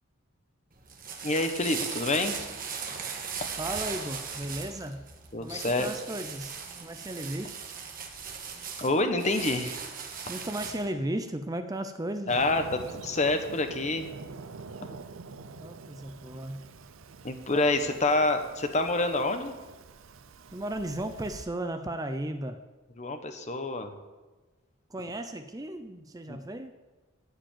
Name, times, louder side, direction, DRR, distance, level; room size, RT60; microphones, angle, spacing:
sound 1, 0.7-10.9, right 6 dB, 40° right, 1.6 m, -38 dB
voice 1, 1.2-2.4 5.3-5.9 8.8-9.8 12.3-14.1 17.2-19.5 23.0-23.9 26.3-26.4, left 2 dB, 35° left, 7 dB, 1.0 m, -27 dB
voice 2, 3.6-5.0 5.4-7.6 10.3-12.3 15.6-16.7 20.5-22.6 24.9-26.7, right 1 dB, 15° right, 8 dB, 0.5 m, -35 dB
Fireworks, 12.3-21.4, right 4 dB, 70° right, 0.6 m, -46 dB
13.0 x 5.1 x 9.1 m, 1.3 s
head